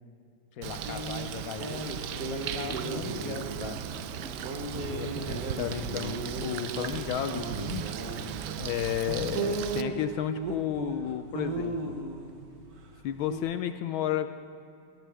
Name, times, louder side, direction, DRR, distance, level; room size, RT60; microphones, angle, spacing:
voice 1, 0.5-3.8, left 7 dB, 55° left, 7 dB, 1.1 m, -40 dB
Bird, 0.6-9.8, right 10 dB, 70° right, 1.0 m, -37 dB
sound 1, 0.9-13.4, right 3 dB, 50° right, 1.6 m, -36 dB
Thunder / Rain, 1.7-13.1, equal, ahead, 2.3 m, -48 dB
voice 2, 4.8-7.9 8.6-12.0 13.0-14.3, left 11 dB, 75° left, 10 dB, 1.3 m, -32 dB
19.0 x 18.5 x 3.5 m, 2.6 s
omnidirectional pair, 2.3 m